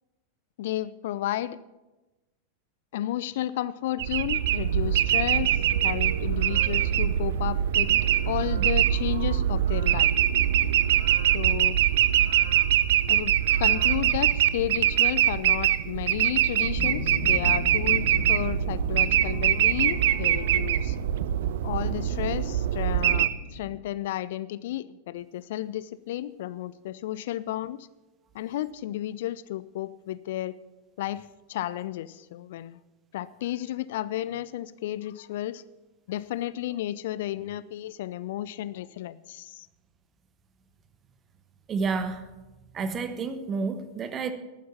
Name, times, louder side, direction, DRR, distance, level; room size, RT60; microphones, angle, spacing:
voice 1, 0.6-1.6 2.9-7.9 8.3-10.1 11.3-11.8 13.1-21.0 21.6-27.9 28.3-30.6 31.0-32.8 33.1-35.6 36.1-39.7, left 13 dB, 55° left, 18 dB, 0.4 m, -32 dB
sound 1, 4.0-23.3, right 11 dB, 55° right, 0.5 m, -23 dB
sound 2, 16.7-23.8, left 2 dB, 85° right, 2.8 m, -36 dB
voice 2, 41.7-42.3 42.7-44.3, right 4 dB, 25° right, 10 dB, 1.2 m, -30 dB
11.5 x 9.3 x 7.2 m, 1.1 s
figure-of-eight pair, 90°, 0 cm